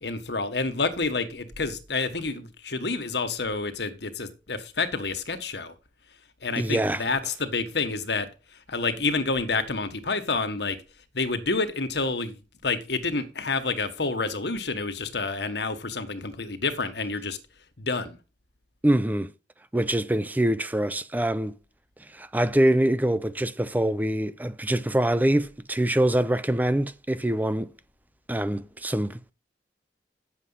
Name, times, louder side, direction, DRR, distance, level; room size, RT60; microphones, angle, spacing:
voice 1, 0.0-5.7 6.4-8.3 8.7-10.8 11.1-17.4 17.8-18.2, left 3 dB, 75° left, 1.6 m, -28 dB
voice 2, 6.6-7.0 18.8-19.3 19.7-21.5 22.0-27.7 28.3-29.3, right 1 dB, 10° right, 0.4 m, -24 dB
9.8 x 7.4 x 5.7 m
head